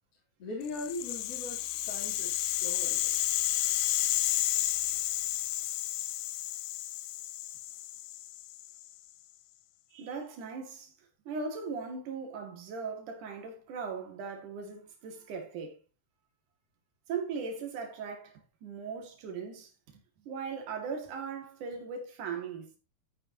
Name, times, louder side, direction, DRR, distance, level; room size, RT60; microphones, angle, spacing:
voice 1, 0.4-3.2, left 2 dB, 45° left, 4.3 m, -40 dB
Rattle (instrument), 0.7-8.9, left 15 dB, 80° left, 2.2 m, -32 dB
voice 2, 9.9-10.9 11.3-15.8 17.1-22.7, right 5 dB, 70° right, 3.7 m, -39 dB
13.0 x 8.7 x 2.9 m
omnidirectional pair, 3.8 m